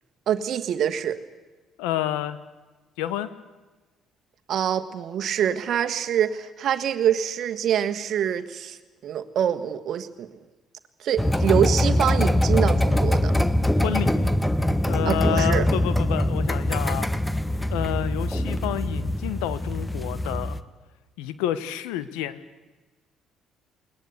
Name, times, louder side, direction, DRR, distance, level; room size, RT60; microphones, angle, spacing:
voice 1, 0.3-1.2 4.5-8.8 9.0-10.3 11.0-13.3 15.0-15.7, right 9 dB, 60° right, 9 dB, 1.5 m, -25 dB
voice 2, 1.8-2.4 3.0-3.3 13.8-14.2 14.9-17.1 17.7-20.6 21.2-22.3, left 12 dB, 80° left, 14 dB, 1.2 m, -29 dB
sound 1, 11.2-20.6, left 1 dB, 10° left, 1.1 m, -23 dB
21.5 x 19.5 x 8.2 m, 1.2 s
hypercardioid pair, 60°, 0 cm